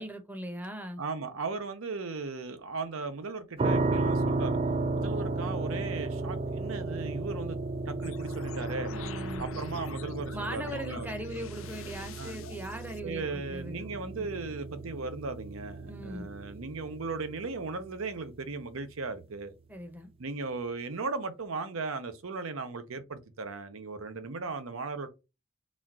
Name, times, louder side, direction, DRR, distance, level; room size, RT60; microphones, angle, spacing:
voice 1, 0.0-1.0 8.9-9.5 10.3-14.3 15.9-16.3 19.7-20.1, equal, 10° right, 0.7 m, -40 dB
voice 2, 1.0-4.6 5.0-7.6 7.9-8.9 9.4-11.1 12.2-12.4 13.0-19.5 20.2-25.1, right 3 dB, 80° right, 0.7 m, -37 dB
sound 1, 3.6-18.4, right 3 dB, 25° right, 0.3 m, -34 dB
sound 2, 8.0-13.0, left 6 dB, 75° left, 0.5 m, -45 dB
4.1 x 2.4 x 4.1 m
head